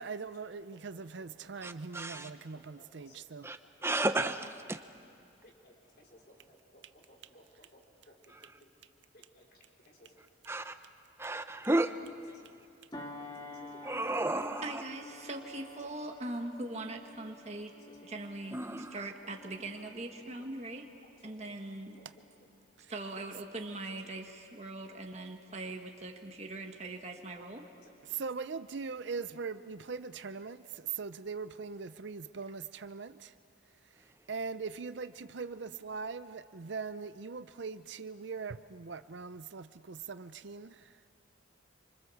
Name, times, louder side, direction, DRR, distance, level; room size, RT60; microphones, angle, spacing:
voice 1, 0.0-3.5 28.0-33.3 34.3-40.9, right 5 dB, 65° right, 0.6 m, -41 dB
voice 2, 0.7-1.3 2.5-3.5 3.8-4.1 5.4-7.8 8.1-8.7 9.1-9.5 9.9-10.1 12.9-13.0 13.5-14.3 17.2-17.3 17.7-18.0 19.2-19.5 20.4-20.5 21.2-21.5 22.0-22.5 25.7-25.8 27.4-27.9, left 1 dB, 50° left, 4.1 m, -61 dB
voice 3, 1.6-2.3 3.4-4.8 8.3-8.5 10.5-10.7 11.2-11.9 13.8-14.8 18.5-18.9, right 2 dB, 15° right, 0.8 m, -33 dB
sound 1, 12.9-21.8 22.2-22.5, left 2 dB, 20° left, 1.7 m, -50 dB
voice 4, 14.6-17.7 18.0-20.9 21.2-22.0 22.9-27.7, right 2 dB, 35° right, 1.6 m, -41 dB
27.5 x 25.5 x 7.1 m
head